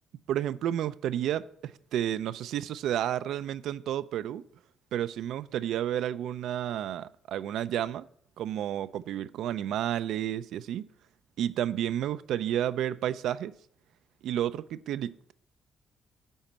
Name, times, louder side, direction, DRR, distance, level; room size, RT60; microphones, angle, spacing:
voice 1, 0.3-4.4 4.9-8.0 8.4-10.9 11.4-13.5 14.2-15.3, right 11 dB, 80° right, 0.4 m, -31 dB
11.0 x 4.4 x 7.2 m
cardioid pair, 90°, 0 cm